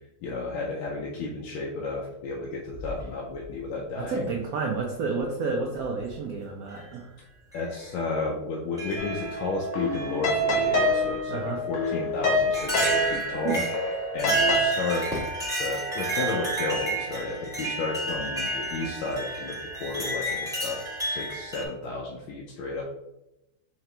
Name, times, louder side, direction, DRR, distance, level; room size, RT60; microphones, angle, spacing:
voice 1, 0.2-4.3 7.5-13.6 14.1-15.1 15.6-22.8, left 3 dB, 85° left, -2 dB, 1.4 m, -32 dB
sound 1, 2.7-3.5 4.7-4.8 5.8-6.1 6.7-6.9 7.5-7.6 8.8-9.5 9.9-10.7 11.8-11.9 12.5-21.6, right 1 dB, 5° right, 0.8 m, -31 dB
voice 2, 4.0-7.1 11.3-11.6 13.4-13.7, right 4 dB, 75° right, 0 dB, 0.8 m, -30 dB
sound 2, 9.0-14.7, equal, 70° left, 1.5 m, -27 dB
4.8 x 2.9 x 3.3 m, 0.91 s
omnidirectional pair, 2.2 m